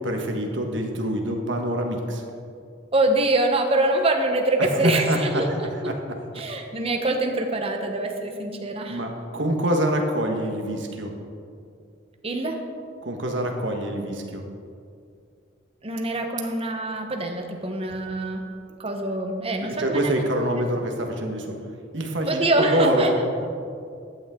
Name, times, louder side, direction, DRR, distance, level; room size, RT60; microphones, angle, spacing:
voice 1, 0.0-2.2 4.6-5.4 5.8-5.9 8.9-11.1 13.0-14.4 19.6-21.5 21.9-22.3 22.6-23.2, right 1 dB, 60° right, 3 dB, 1.4 m, -25 dB
voice 2, 2.9-5.5 5.8-5.9 6.3-9.0 12.2-12.6 15.8-18.4 18.8-20.2 22.3-23.1, right 2 dB, 30° right, 3 dB, 1.0 m, -24 dB
14.0 x 9.3 x 3.8 m, 2.4 s
head